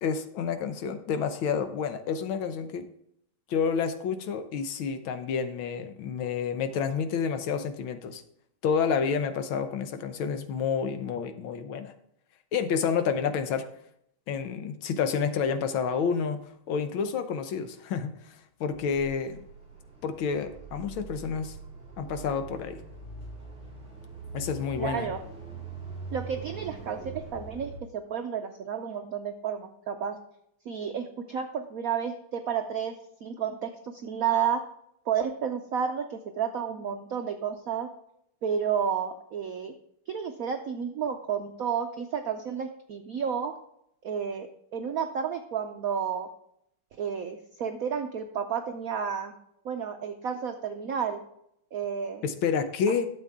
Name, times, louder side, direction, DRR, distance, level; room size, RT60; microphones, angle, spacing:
voice 1, 0.0-2.9 3.5-8.2 8.6-11.9 12.5-13.7 14.3-19.4 20.0-21.5 22.0-22.8 24.3-25.1 52.2-53.1, left 6 dB, 70° left, 8 dB, 1.6 m, -29 dB
sound 1, 18.7-27.8, right 3 dB, 5° right, 3.2 m, -43 dB
voice 2, 24.8-25.2 26.1-30.2 30.7-33.0 33.2-34.6 35.1-37.9 38.4-39.7 40.1-43.5 44.0-46.3 47.0-49.3 49.6-51.2 51.7-52.2 52.9-53.0, right 7 dB, 80° right, 6 dB, 0.8 m, -31 dB
12.0 x 7.3 x 3.6 m, 0.74 s
omnidirectional pair, 2.4 m